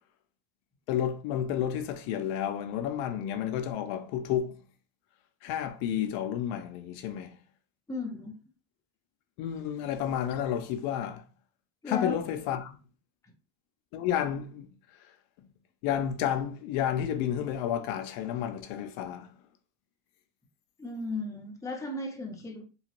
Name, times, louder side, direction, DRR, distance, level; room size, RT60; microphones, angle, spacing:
voice 1, 0.9-4.6 5.4-7.4 9.4-11.3 11.9-12.8 13.9-14.7 15.8-19.3, left 10 dB, 80° left, 0.6 m, -31 dB
voice 2, 7.9-8.3 11.8-12.2 20.8-22.6, left 3 dB, 5° left, 0.6 m, -35 dB
2.9 x 2.4 x 2.9 m
cardioid pair, 120°, 47 cm